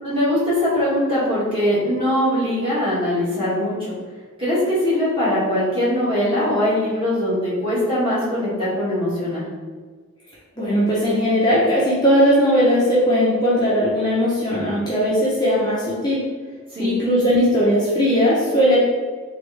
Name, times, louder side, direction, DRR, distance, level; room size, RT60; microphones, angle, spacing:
voice 1, 0.0-3.9 4.4-9.4 16.7-16.9, left 1 dB, 25° right, -9 dB, 1.5 m, -21 dB
voice 2, 10.6-16.2 16.8-18.8, equal, 20° left, -8 dB, 0.6 m, -18 dB
3.5 x 3.3 x 3.2 m, 1.5 s
head